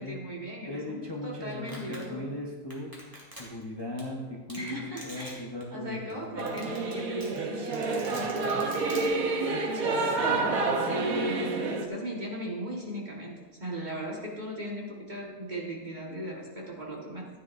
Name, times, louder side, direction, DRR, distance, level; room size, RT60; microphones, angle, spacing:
voice 1, 0.0-2.3 4.5-17.3, equal, 30° right, -2 dB, 1.8 m, -38 dB
voice 2, 0.7-2.9 3.4-6.6, left 1 dB, 20° left, -2 dB, 1.0 m, -38 dB
Domestic sounds home sounds, 1.7-2.0 2.7-3.6 4.0-4.1 4.5-4.7 5.0-5.3 5.6-5.7 6.1-6.2 6.4-6.9 7.2-9.1, equal, 15° right, 2.4 m, -44 dB
Singing / Musical instrument, 6.4-11.9, right 3 dB, 75° right, 1.5 m, -29 dB
14.5 x 9.6 x 2.7 m, 1.3 s
omnidirectional pair, 1.5 m